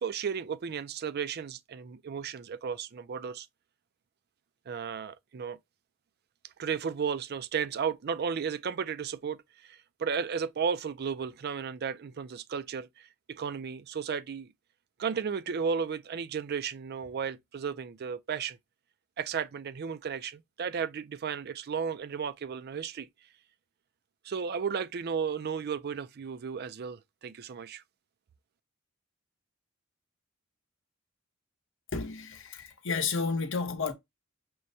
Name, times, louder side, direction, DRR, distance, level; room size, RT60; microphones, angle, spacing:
voice 1, 0.0-3.5 4.7-5.6 6.6-14.5 15.0-18.6 19.2-23.1 24.2-27.8, right 6 dB, 50° right, 0.4 m, -34 dB
voice 2, 31.9-33.9, left 4 dB, 65° left, 0.9 m, -31 dB
6.2 x 2.1 x 2.6 m
head